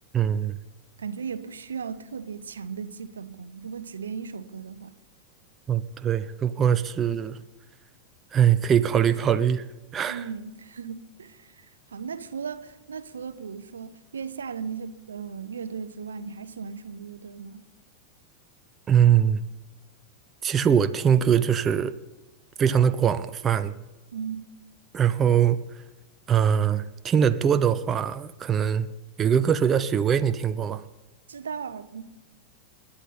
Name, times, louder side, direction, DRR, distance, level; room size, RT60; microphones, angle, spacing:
voice 1, 0.1-0.6 5.7-7.4 8.3-9.7 9.9-10.2 18.9-19.4 20.4-21.9 22.6-23.7 24.9-25.6 26.3-28.9 29.2-30.8, right 8 dB, 25° right, 0.7 m, -22 dB
voice 2, 1.0-4.9 10.1-17.7 24.1-24.5 31.3-32.0, right 6 dB, 70° right, 0.9 m, -37 dB
28.0 x 11.5 x 4.2 m
figure-of-eight pair, 90°, 0 cm